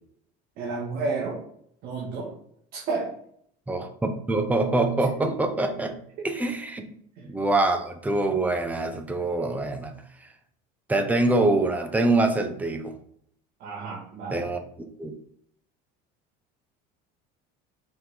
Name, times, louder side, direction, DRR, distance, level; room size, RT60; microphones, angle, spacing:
voice 1, 0.6-1.4 1.8-2.3 2.7-3.1 5.2-5.3 7.2-7.3 13.6-14.4, right 3 dB, 50° right, -3 dB, 1.9 m, -31 dB
voice 2, 3.7-6.0 6.2-6.9 7.2-9.9 10.9-12.9 14.3-14.6 15.0-15.1, right 2 dB, 10° right, 6 dB, 0.8 m, -25 dB
5.8 x 5.4 x 4.9 m, 0.67 s
cardioid pair, 165°, 19 cm